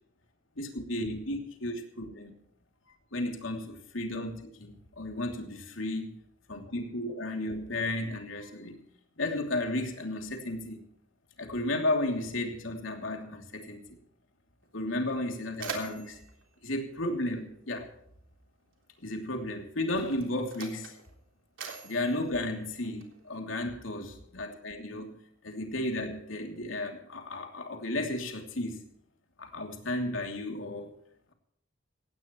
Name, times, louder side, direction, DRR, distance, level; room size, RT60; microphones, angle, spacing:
voice 1, 0.6-2.3 3.1-6.2 6.5-8.8 9.2-10.8 11.4-14.0 14.7-16.2 16.6-17.9 19.0-20.9 21.8-25.2 25.4-28.8 29.4-30.9, left 1 dB, 90° left, 3 dB, 2.9 m, -33 dB
Mechanisms, 14.6-14.7 15.1-17.8 18.8-19.0 19.8-23.4, right 5 dB, 80° right, 3.6 m, -44 dB
18.0 x 17.0 x 3.1 m, 0.72 s
head